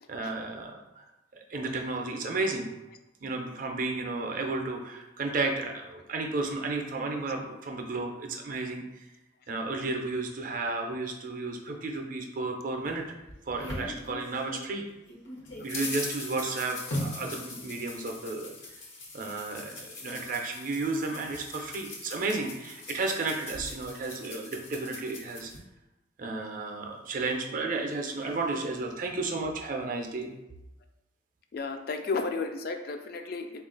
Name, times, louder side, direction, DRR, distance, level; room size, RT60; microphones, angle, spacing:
voice 1, 0.1-1.0 1.3-2.7 3.2-8.8 9.5-13.0 13.5-14.8 15.6-18.5 19.1-25.5 26.2-30.3, right 3 dB, 45° right, 3 dB, 0.4 m, -33 dB
sound 1, 12.8-14.7 15.1-25.6, left 2 dB, 80° left, 0.9 m, -40 dB
voice 2, 31.5-33.6, left 4 dB, 50° left, 5 dB, 0.3 m, -33 dB
3.6 x 2.4 x 3.8 m, 0.95 s
head